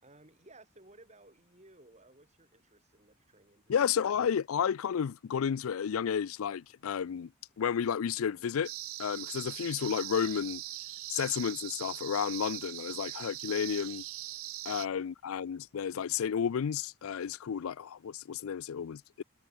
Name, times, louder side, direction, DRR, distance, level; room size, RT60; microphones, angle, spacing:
voice 1, 0.0-4.1 15.0-15.1, right 2 dB, 30° right, 6.2 m, -59 dB
voice 2, 3.7-7.3 7.6-8.7 9.0-10.6 11.1-14.0 14.7-19.2, left 7 dB, 80° left, 0.4 m, -32 dB
sound 1, 8.6-14.9, right 16 dB, 75° right, 0.6 m, -41 dB
head